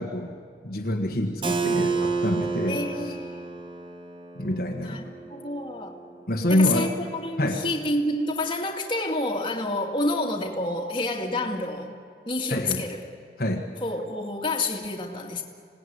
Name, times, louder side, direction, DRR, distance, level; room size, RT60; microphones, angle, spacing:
voice 1, 0.0-2.8 4.4-5.0 6.3-6.9 7.4-7.7 12.5-12.9 13.4-13.7, left 1 dB, 55° left, 1 dB, 1.7 m, -26 dB
Keyboard (musical), 1.4-7.0, right 4 dB, 30° right, 1.5 m, -31 dB
voice 2, 2.7-3.4 4.8-5.0 5.3-6.0 6.5-11.9 12.3-13.0 13.8-15.4, left 2 dB, 30° left, 1 dB, 2.3 m, -28 dB
26.0 x 18.5 x 9.6 m, 2.2 s
head